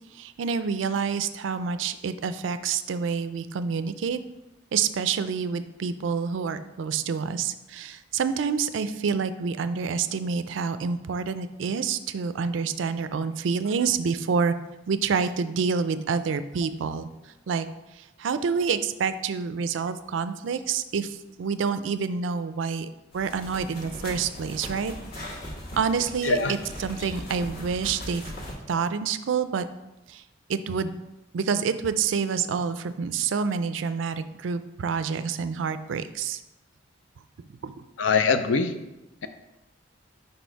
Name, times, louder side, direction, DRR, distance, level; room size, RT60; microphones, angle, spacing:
voice 1, 0.2-4.2 4.7-14.5 14.9-17.1 17.5-17.7 18.2-22.9 23.1-24.9 25.8-28.2 28.7-29.6 30.1-30.2 30.5-31.0 31.3-36.4 37.6-37.8, right 6 dB, 80° right, 12 dB, 0.4 m, -27 dB
sound 1, 23.1-28.5, left 1 dB, 55° left, 1.6 m, -39 dB
voice 2, 26.2-26.5 38.0-38.7, left 4 dB, 80° left, 9 dB, 0.5 m, -22 dB
5.3 x 4.3 x 4.5 m, 0.97 s
head